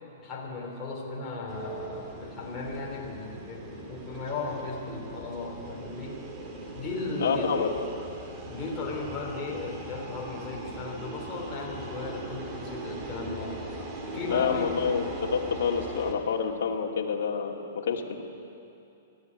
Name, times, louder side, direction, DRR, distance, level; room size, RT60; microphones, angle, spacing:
voice 1, 0.2-6.2 6.7-7.5 8.5-13.6 14.1-15.0, left 3 dB, 10° left, -5 dB, 3.5 m, -36 dB
sound 1, 1.5-16.1, right 2 dB, 20° right, 1.9 m, -40 dB
voice 2, 7.2-7.8 14.3-18.2, left 6 dB, 60° left, 0 dB, 2.4 m, -28 dB
20.5 x 14.0 x 9.9 m, 2.7 s
hypercardioid pair, 175°, 0 cm